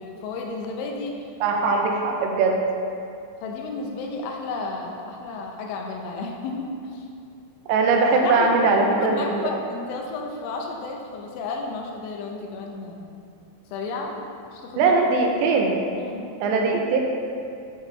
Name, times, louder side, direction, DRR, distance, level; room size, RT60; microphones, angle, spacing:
voice 1, 0.0-1.3 3.4-7.1 8.1-13.0 13.7-14.9 16.0-16.4, left 3 dB, 90° left, 1 dB, 3.3 m, -32 dB
voice 2, 1.4-2.6 7.7-9.5 14.8-15.8 16.4-17.0, right 4 dB, 80° right, 1 dB, 3.0 m, -20 dB
8.3 x 7.9 x 3.3 m, 2.5 s
omnidirectional pair, 5.3 m